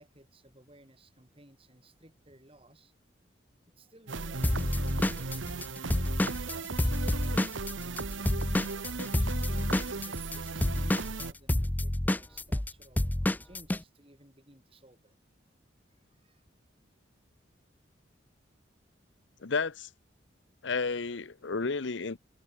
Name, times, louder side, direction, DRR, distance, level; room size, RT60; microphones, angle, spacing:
voice 1, 0.0-2.9 3.7-5.6 6.0-15.1 16.2-16.5, right 1 dB, 30° right, 3.1 m, -58 dB
sound 1, 4.1-11.3, right 3 dB, 80° right, 1.3 m, -37 dB
Drum kit / Drum, 4.4-8.0 8.3-13.8, left 1 dB, 10° left, 0.4 m, -28 dB
voice 2, 19.4-19.9 20.6-22.2, left 4 dB, 70° left, 0.8 m, -32 dB
open air
head